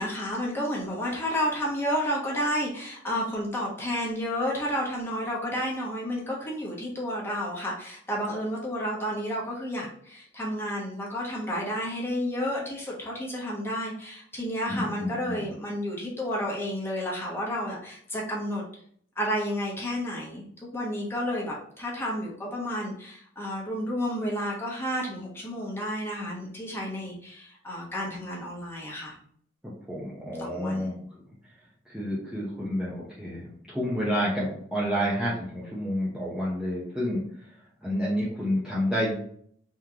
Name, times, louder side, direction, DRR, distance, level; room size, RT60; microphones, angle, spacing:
voice 1, 0.0-18.6 19.2-29.1 30.4-30.9, equal, 10° left, -4 dB, 1.1 m, -31 dB
voice 2, 14.7-15.5 29.6-31.0 31.9-37.2 37.8-39.2, equal, 5° right, -8 dB, 0.7 m, -29 dB
3.6 x 3.2 x 2.8 m, 0.62 s
head